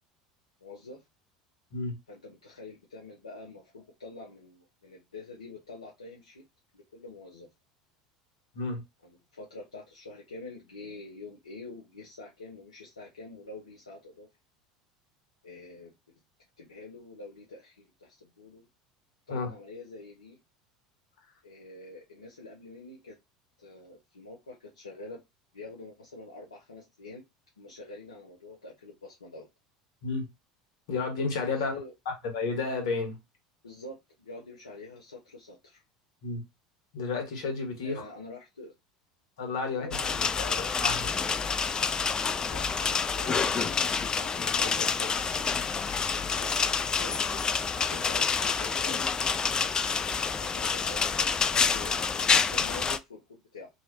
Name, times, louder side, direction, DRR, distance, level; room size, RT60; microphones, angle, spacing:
voice 1, 0.6-1.0 2.1-6.4 6.7-7.5 9.0-14.3 15.4-15.9 16.6-18.7 19.3-20.4 21.4-23.2 23.6-25.2 25.5-27.2 27.6-29.5 31.5-31.9 33.6-35.8 37.8-38.7 39.8-40.8 42.4-45.5 46.4-53.7, left 2 dB, 85° left, 0.7 m, -46 dB
voice 2, 30.9-31.7 32.3-33.2 36.2-36.4 36.9-38.0 39.4-39.9 40.4-41.1, left 4 dB, 65° left, 1.3 m, -31 dB
sound 1, 39.9-53.0, left 5 dB, 25° left, 0.3 m, -28 dB
2.9 x 2.8 x 2.7 m
figure-of-eight pair, 75°, 3 cm